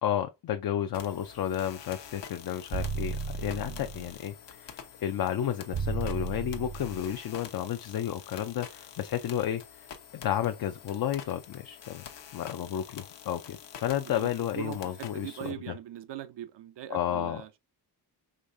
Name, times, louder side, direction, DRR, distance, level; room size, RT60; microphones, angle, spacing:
voice 1, 0.0-9.6 10.1-12.0 12.3-15.7 16.9-17.4, left 10 dB, 55° left, 0.5 m, -32 dB
sound 1, 0.9-15.5, left 8 dB, 75° left, 0.9 m, -47 dB
sound 2, 2.7-4.2 5.7-7.2, right 4 dB, 35° right, 0.5 m, -34 dB
voice 2, 3.5-3.9 14.1-14.3 14.5-17.6, right 12 dB, 75° right, 0.6 m, -41 dB
5.1 x 3.2 x 2.6 m
cardioid pair, 105°, 42 cm